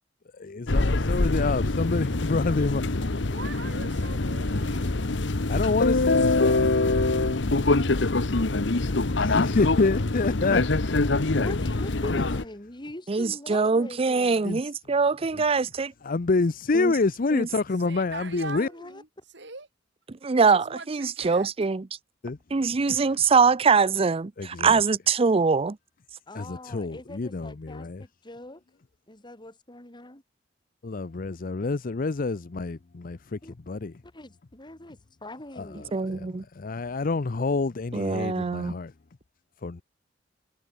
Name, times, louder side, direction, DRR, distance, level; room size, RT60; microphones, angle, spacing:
voice 1, 0.4-3.0 5.5-6.6 9.2-10.6 14.4-14.6 15.3-15.4 16.0-18.7 22.2-22.4 22.9-23.0 24.4-24.8 26.3-28.0 30.8-33.4 33.7-33.9 35.6-35.9 36.1-36.3 36.6-38.9 39.6-39.8, left 3 dB, 50° left, 0.6 m, -27 dB
sound 1, 0.7-12.4, left 2 dB, 75° left, 1.2 m, -24 dB
voice 2, 3.2-5.1 17.8-19.7 20.3-21.5, right 3 dB, 70° right, 7.8 m, -42 dB
voice 3, 11.3-14.5 18.5-19.0 26.3-28.6 29.1-30.2 33.4-33.5 34.0-35.9, left 1 dB, 25° left, 3.2 m, -42 dB
voice 4, 13.1-15.9 16.7-16.9 17.3-17.5 20.2-21.9 22.5-25.8 35.9-36.4 37.9-38.7, right 5 dB, 30° right, 0.5 m, -23 dB
head